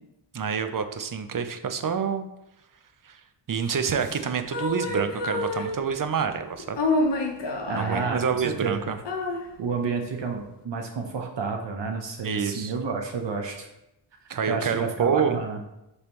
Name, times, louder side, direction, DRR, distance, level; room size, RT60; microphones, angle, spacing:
voice 1, 0.3-2.3 3.0-3.2 3.5-6.8 7.8-9.0 12.2-12.7 14.3-15.4, right 6 dB, 45° right, 8 dB, 0.7 m, -27 dB
sound 1, 3.9-6.0 6.6-8.2 8.6-8.7 9.1-9.4, left 2 dB, 60° left, 1.1 m, -28 dB
voice 2, 7.7-8.7 9.6-13.7 14.5-15.6, right 4 dB, 60° right, 1 dB, 1.1 m, -30 dB
9.6 x 3.3 x 3.0 m, 0.88 s
cardioid pair, 60°, 48 cm